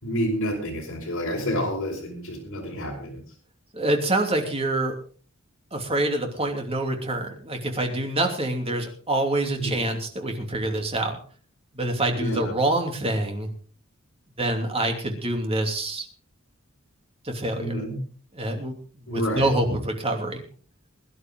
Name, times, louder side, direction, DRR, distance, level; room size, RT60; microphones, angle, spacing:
voice 1, 0.0-3.2 9.6-9.8 12.1-12.5 17.6-18.0 19.1-19.5, equal, 65° left, -1 dB, 4.9 m, -29 dB
voice 2, 3.7-5.0 5.7-11.2 11.7-13.5 14.4-16.1 17.2-17.8 18.3-18.7 19.1-20.4, right 1 dB, 30° right, 3 dB, 2.9 m, -26 dB
21.5 x 11.0 x 3.8 m, 0.42 s
head